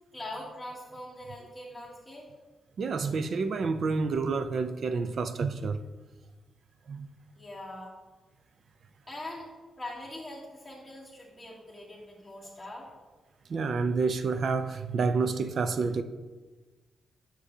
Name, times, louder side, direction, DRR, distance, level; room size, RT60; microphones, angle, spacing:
voice 1, 0.1-2.3 7.3-7.9 9.1-9.5 9.8-12.9, left 1 dB, ahead, 2.4 m, -42 dB
voice 2, 2.8-5.8 6.9-7.1 13.5-16.0, right 4 dB, 50° right, 0.4 m, -29 dB
9.9 x 6.1 x 2.7 m
cardioid pair, 135°, 0 cm